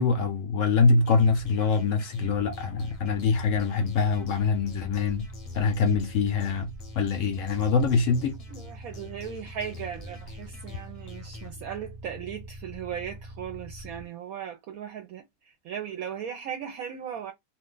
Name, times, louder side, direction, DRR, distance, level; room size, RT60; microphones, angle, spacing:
voice 1, 0.0-5.3 5.5-8.4, left 4 dB, 70° left, 0.7 m, -24 dB
sound 1, 1.0-11.5, left 4 dB, 35° left, 0.5 m, -48 dB
sound 2, 2.2-14.0, right 1 dB, 30° right, 0.5 m, -44 dB
voice 2, 8.5-17.3, right 8 dB, 70° right, 0.9 m, -37 dB
2.6 x 2.2 x 3.7 m
omnidirectional pair, 1.7 m